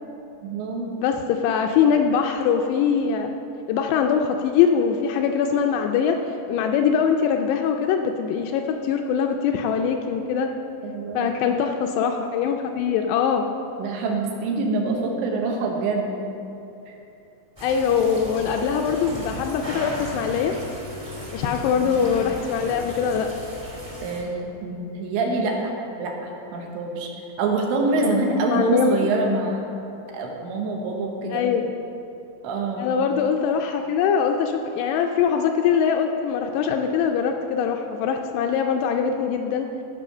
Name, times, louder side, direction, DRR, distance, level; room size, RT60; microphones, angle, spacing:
voice 1, 0.4-0.9 10.8-11.4 13.8-16.1 16.9-17.0 21.8-22.1 24.0-24.4 24.6-25.7 26.0-27.1 27.4-29.6 30.1-31.5 32.4-32.9, right 3 dB, 80° right, 0 dB, 3.6 m, -25 dB
voice 2, 1.0-3.3 3.7-6.2 6.5-10.5 11.1-13.5 17.6-20.5 21.3-23.3 28.0-28.1 28.5-29.1 31.3-31.7 32.8-39.7, left 7 dB, 80° left, 4 dB, 2.5 m, -22 dB
sound 1, 17.6-24.2, left 1 dB, 25° right, 0.6 m, -36 dB
14.5 x 5.5 x 6.7 m, 2.9 s
omnidirectional pair, 5.2 m